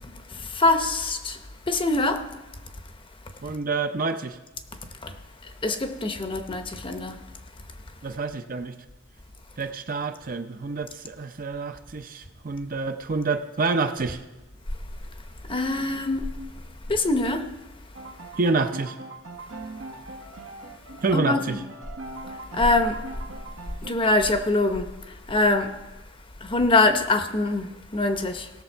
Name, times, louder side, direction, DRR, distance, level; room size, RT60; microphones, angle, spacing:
voice 1, 0.0-1.4 1.7-2.3 4.8-5.1 5.4-7.2 15.5-16.3 16.9-17.5 21.1-21.4 22.3-23.0 23.8-25.7 26.4-28.5, left 2 dB, 25° left, 0.8 m, -24 dB
voice 2, 3.4-4.4 8.0-8.8 9.6-14.2 18.3-19.0 21.0-21.6, right 3 dB, 45° right, 0.6 m, -27 dB
sound 1, 17.9-23.9, right 2 dB, 75° right, 1.0 m, -41 dB
17.5 x 6.8 x 4.5 m
head